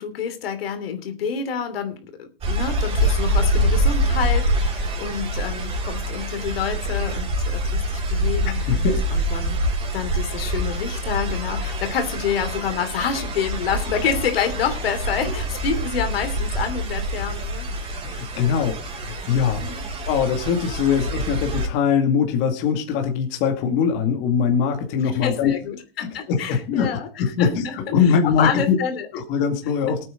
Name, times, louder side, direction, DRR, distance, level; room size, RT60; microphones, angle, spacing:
voice 1, 0.0-9.6 9.9-18.0 18.4-18.6 19.6-19.8 25.0-29.1, left 7 dB, 80° left, 8 dB, 2.9 m, -28 dB
sound 1, 2.4-21.7, equal, 20° right, 4.1 m, -25 dB
voice 2, 8.6-9.0 18.0-19.7 20.1-25.5 26.0-28.8 29.1-30.0, left 7 dB, 40° left, 4 dB, 2.4 m, -22 dB
19.0 x 8.9 x 3.9 m, 0.34 s
supercardioid pair, 150°, 29 cm